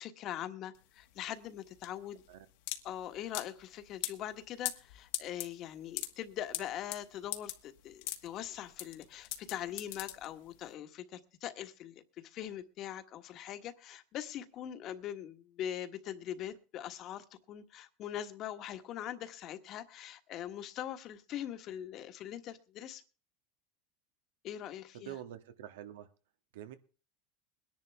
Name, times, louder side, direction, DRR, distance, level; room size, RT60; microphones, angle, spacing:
voice 1, 0.0-2.2 2.8-23.0 24.4-25.2, left 11 dB, 45° left, 9 dB, 1.3 m, -42 dB
sound 1, 0.7-10.7, left 15 dB, 75° left, 1.4 m, -41 dB
voice 2, 24.9-26.1 26.5-26.8, right 11 dB, 85° right, 10 dB, 1.5 m, -46 dB
21.5 x 10.5 x 3.5 m, 0.35 s
supercardioid pair, 135°, 0 cm